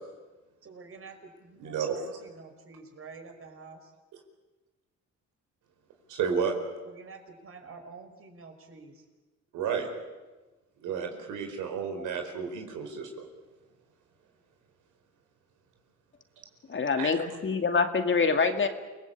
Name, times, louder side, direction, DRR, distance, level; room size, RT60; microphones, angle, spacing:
voice 1, 0.6-3.9 6.8-9.1, right 4 dB, 45° right, 5 dB, 5.4 m, -48 dB
voice 2, 1.6-2.0 6.1-6.5 9.5-9.9 10.8-13.3 17.0-17.1, right 6 dB, 90° right, 4 dB, 4.8 m, -31 dB
voice 3, 16.7-18.7, left 5 dB, 40° left, 6 dB, 2.5 m, -25 dB
29.0 x 19.5 x 8.6 m, 1.2 s
cardioid pair, 90°, 30 cm